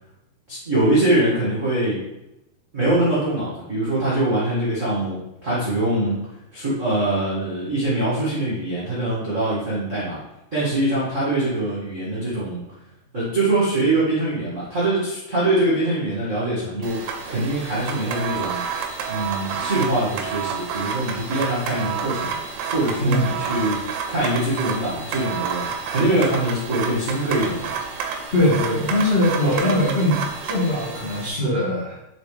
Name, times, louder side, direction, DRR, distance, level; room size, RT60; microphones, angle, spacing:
voice 1, 0.5-2.0 2.7-6.2 6.5-10.2 10.5-12.6 13.1-18.6 19.1-22.3 22.7-27.7, right 1 dB, 65° right, -10 dB, 0.7 m, -23 dB
sound 1, 16.8-31.3, right 6 dB, 85° right, 2.8 m, -30 dB
voice 2, 28.3-32.0, left 1 dB, 40° left, -8 dB, 0.8 m, -21 dB
6.5 x 4.7 x 3.3 m, 0.90 s
omnidirectional pair, 4.9 m